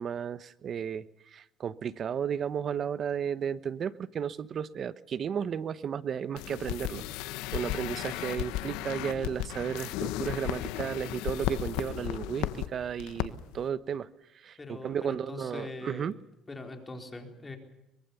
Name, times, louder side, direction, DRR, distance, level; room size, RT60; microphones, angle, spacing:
voice 1, 0.0-7.0 7.5-14.1 14.3-16.1, right 8 dB, 40° right, 16 dB, 1.0 m, -34 dB
sound 1, 6.4-12.7 13.0-13.3 13.5-13.6, left 14 dB, 90° left, 1.4 m, -34 dB
voice 2, 14.6-16.1 16.5-17.6, left 2 dB, 15° left, 4 dB, 4.1 m, -42 dB
24.0 x 22.0 x 7.0 m, 0.89 s
cardioid pair, 125°, 0 cm